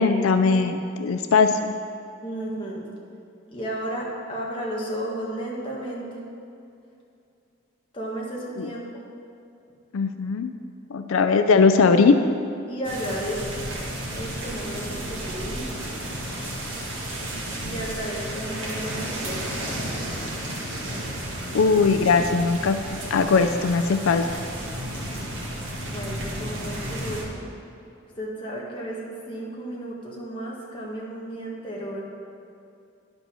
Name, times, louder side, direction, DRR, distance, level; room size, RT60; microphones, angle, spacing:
voice 1, 0.0-1.7 8.6-8.7 9.9-10.5 10.9-12.2 21.5-24.3, left 4 dB, 85° left, 8 dB, 0.4 m, -20 dB
voice 2, 2.2-2.8 3.5-6.2 7.9-8.8 12.7-13.7 14.1-15.8 17.6-20.1 25.8-27.4 28.2-32.0, right 1 dB, 25° left, -4 dB, 1.5 m, -33 dB
sound 1, 12.8-27.2, right 1 dB, 65° right, 1.8 m, -32 dB
10.5 x 5.3 x 6.2 m, 2.6 s
head